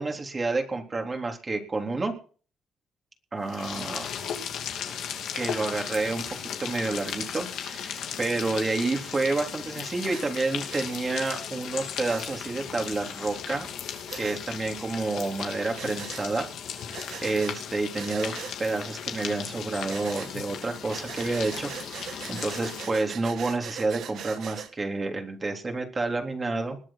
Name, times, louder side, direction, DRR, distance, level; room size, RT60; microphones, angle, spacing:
voice 1, 0.0-2.1 3.3-4.0 5.3-6.2 6.6-13.7 14.2-16.5 17.2-26.8, right 3 dB, 30° right, 3 dB, 3.6 m, -29 dB
sound 1, 3.4-23.1, left 8 dB, 80° left, 2.7 m, -36 dB
Breathing, 10.1-10.2 10.7-10.9 12.0-12.2 14.1-14.4 15.7-16.3 16.9-17.6 17.9-18.6 19.9-20.3 20.9-24.7, right 8 dB, 75° right, 1.8 m, -40 dB
20.5 x 7.7 x 6.0 m, 0.41 s
cardioid pair, 90°, 0 cm